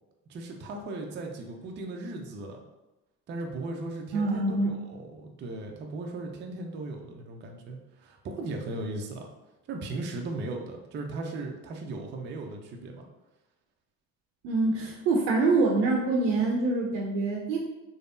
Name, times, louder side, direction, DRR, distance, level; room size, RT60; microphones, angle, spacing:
voice 1, 0.3-2.6 3.3-9.3 9.7-13.1, right 2 dB, 25° right, 2 dB, 0.4 m, -37 dB
voice 2, 4.1-4.7 14.4-17.6, right 3 dB, 85° right, -1 dB, 0.5 m, -25 dB
3.3 x 2.0 x 2.5 m, 1.0 s
hypercardioid pair, 75°, 49 cm